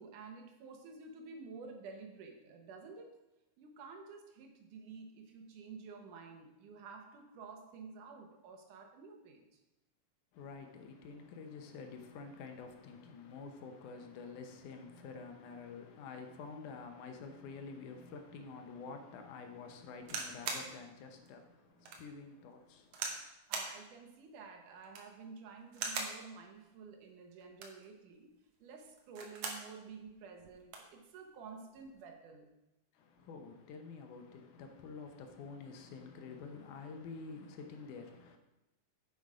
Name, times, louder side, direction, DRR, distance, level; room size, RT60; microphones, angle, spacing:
voice 1, 0.0-3.2 3.6-9.5 23.5-28.3 28.6-32.5, right 5 dB, 85° right, 2.7 m, -51 dB
voice 2, 10.3-23.2 32.9-38.4, left 4 dB, 85° left, 2.5 m, -48 dB
sound 1, 20.0-20.7 21.3-21.4 21.9-22.0 22.9-23.2 23.5-23.8 24.8-25.2 25.7-26.2 27.4-27.9 29.0-29.7 30.1-30.2 30.4-30.9 31.8-32.0, right 4 dB, 60° right, 2.0 m, -40 dB
7.6 x 7.2 x 4.9 m
omnidirectional pair, 3.5 m